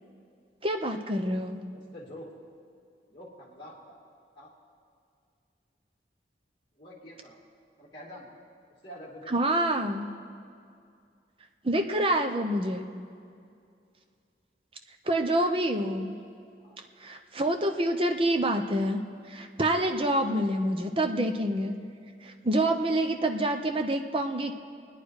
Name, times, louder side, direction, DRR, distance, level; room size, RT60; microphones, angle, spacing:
voice 1, 0.6-1.6 9.3-10.1 11.6-12.8 15.1-16.1 17.0-19.0 19.3-21.7 22.2-24.5, right 1 dB, 30° right, 5 dB, 0.9 m, -27 dB
voice 2, 1.7-2.3 3.1-3.9 4.4-4.5 6.8-7.4 7.8-8.3 8.8-9.4 16.6-16.8, equal, 25° left, -6 dB, 2.8 m, -46 dB
24.0 x 9.7 x 4.8 m, 2.4 s
head